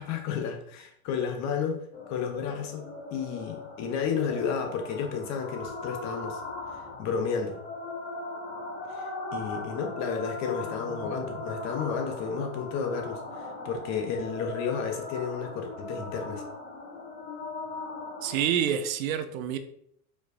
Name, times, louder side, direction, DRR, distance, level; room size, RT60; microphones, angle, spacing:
voice 1, 0.0-2.8 3.1-6.4 7.0-7.6 8.9-16.4, left 6 dB, 40° left, 4 dB, 0.8 m, -32 dB
sound 1, 1.9-18.5, left 2 dB, 20° left, 1.3 m, -39 dB
voice 2, 18.2-19.6, right 9 dB, 65° right, 10 dB, 0.7 m, -27 dB
4.6 x 4.5 x 2.6 m, 0.68 s
hypercardioid pair, 110°, 44 cm